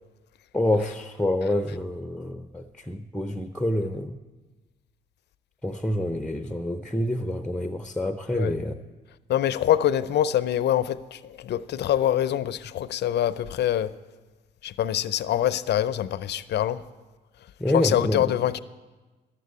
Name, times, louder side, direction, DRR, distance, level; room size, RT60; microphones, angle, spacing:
voice 1, 0.5-4.2 5.6-8.8 17.6-18.3, left 1 dB, 5° left, 0.6 m, -27 dB
voice 2, 9.3-13.9 14.6-16.8 17.7-18.6, left 11 dB, 65° left, 0.5 m, -24 dB
11.5 x 7.5 x 8.2 m
supercardioid pair, 70°, 19 cm